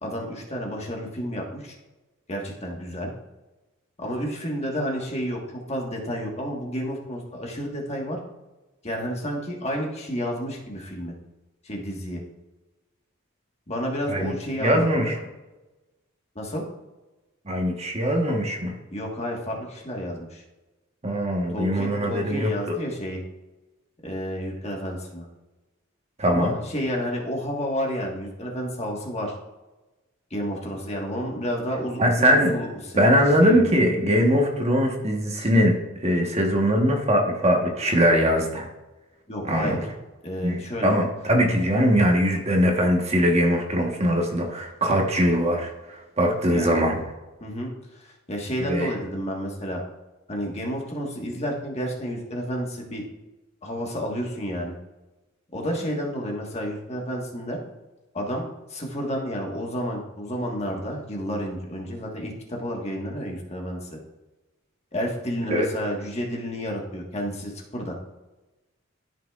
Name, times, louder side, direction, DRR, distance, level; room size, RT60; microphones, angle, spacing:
voice 1, 0.0-1.7 2.3-3.1 4.0-8.2 8.8-11.1 11.6-12.2 13.7-15.1 16.3-16.6 18.9-20.4 21.5-23.2 24.0-25.3 26.3-29.3 30.3-32.7 33.4-33.7 39.3-39.8 40.2-41.0 46.5-46.7 47.4-49.8 50.3-53.0 53.6-54.7 55.5-57.6 58.1-63.9 64.9-67.9, equal, 30° left, 0 dB, 1.5 m, -30 dB
voice 2, 14.6-15.2 17.5-18.7 21.0-22.7 26.2-26.5 32.0-32.5 32.9-35.8 36.0-38.7 39.4-39.8 40.4-47.0 48.6-48.9 65.5-65.7, equal, 30° right, 1 dB, 1.2 m, -21 dB
13.5 x 5.9 x 2.4 m, 1.1 s
head